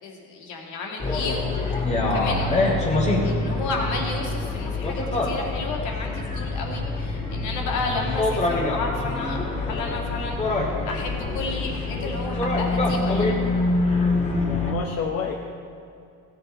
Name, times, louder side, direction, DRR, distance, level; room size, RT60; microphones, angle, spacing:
voice 1, 0.0-2.7 3.2-10.4 10.9-13.4, left 3 dB, 70° left, 0 dB, 2.4 m, -32 dB
sound 1, 1.0-14.7, left 2 dB, 20° left, 2.1 m, -25 dB
voice 2, 14.1-15.4, left 6 dB, 50° left, 0 dB, 1.1 m, -30 dB
16.5 x 8.3 x 4.3 m, 2.5 s
cardioid pair, 135°, 31 cm